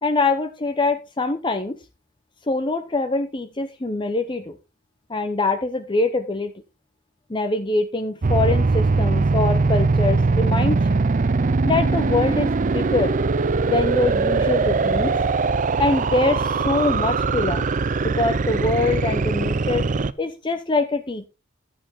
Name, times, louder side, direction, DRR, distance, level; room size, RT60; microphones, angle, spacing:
voice 1, 0.0-1.8 2.5-4.5 5.1-6.5 7.3-11.0 11.6-13.1 13.7-15.1 15.8-17.7 18.0-19.9 20.2-21.3, left 3 dB, 25° left, 7 dB, 0.7 m, -24 dB
sound 1, 8.2-20.1, right 3 dB, 40° right, 0.5 m, -21 dB
12.0 x 7.8 x 3.6 m, 0.28 s
head